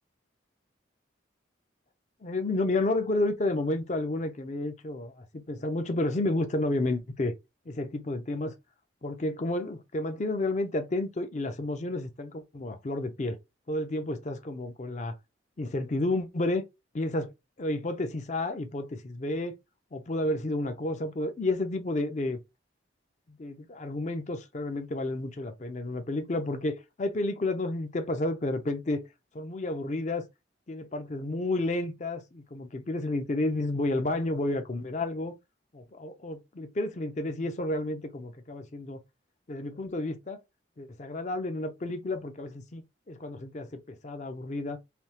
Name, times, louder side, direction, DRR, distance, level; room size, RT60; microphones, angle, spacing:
voice 1, 2.2-7.3 7.7-8.5 9.0-13.4 13.7-15.2 15.6-16.6 16.9-17.3 17.6-19.5 19.9-22.4 23.3-29.0 29.3-30.2 30.7-35.3 35.7-39.0 39.5-40.4 40.8-44.8, left 2 dB, 35° left, 0.5 m, -31 dB
3.4 x 2.7 x 2.8 m
head